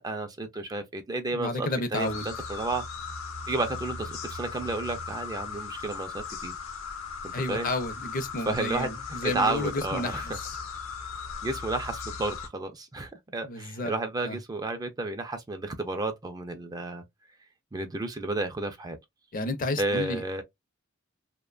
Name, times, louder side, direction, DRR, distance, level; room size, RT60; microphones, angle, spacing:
voice 1, 0.0-2.8 3.5-6.6 7.2-7.7 8.5-10.4 11.4-17.0 17.7-19.0 19.8-20.4, right 2 dB, 20° right, 0.4 m, -32 dB
voice 2, 1.3-2.3 7.3-10.6 13.4-13.9 14.2-14.4 19.3-20.2, left 2 dB, 40° left, 0.5 m, -31 dB
sound 1, 1.9-12.5, left 5 dB, 75° left, 0.7 m, -38 dB
2.7 x 2.1 x 2.3 m
head